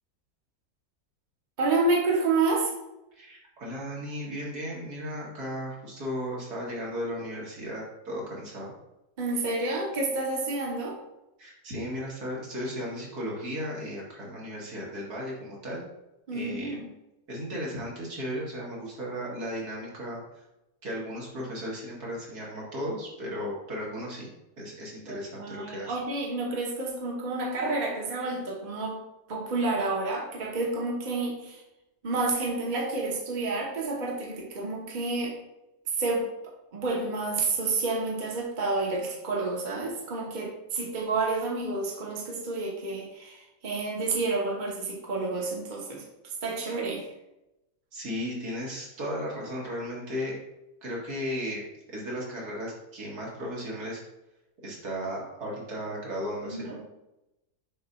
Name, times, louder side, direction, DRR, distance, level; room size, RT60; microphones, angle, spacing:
voice 1, 1.6-2.7 9.2-11.0 16.3-16.9 25.1-29.0 29.3-31.6 32.0-35.3 35.9-36.2 36.7-46.0 46.4-47.1 56.4-56.8, right 3 dB, 35° right, -2 dB, 1.2 m, -29 dB
voice 2, 3.2-8.7 11.4-15.8 16.3-16.8 17.3-20.2 20.8-24.3 24.6-25.9 47.9-50.4 50.8-51.6 51.9-54.0 54.6-56.8, equal, 75° right, -4 dB, 2.3 m, -35 dB
6.8 x 2.6 x 5.4 m, 0.93 s
omnidirectional pair, 1.6 m